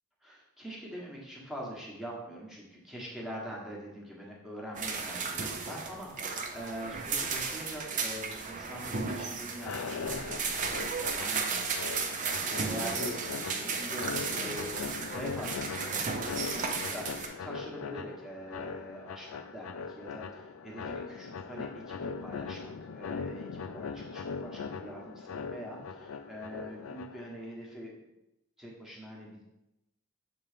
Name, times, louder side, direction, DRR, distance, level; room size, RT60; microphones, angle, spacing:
voice 1, 0.2-11.6 12.4-28.0 28.6-29.4, equal, ahead, -4 dB, 1.2 m, -44 dB
sound 1, 4.8-17.3, right 5 dB, 35° right, 0.6 m, -34 dB
sound 2, 9.5-27.4, left 5 dB, 75° left, 0.4 m, -40 dB
7.0 x 3.0 x 5.0 m, 0.89 s
head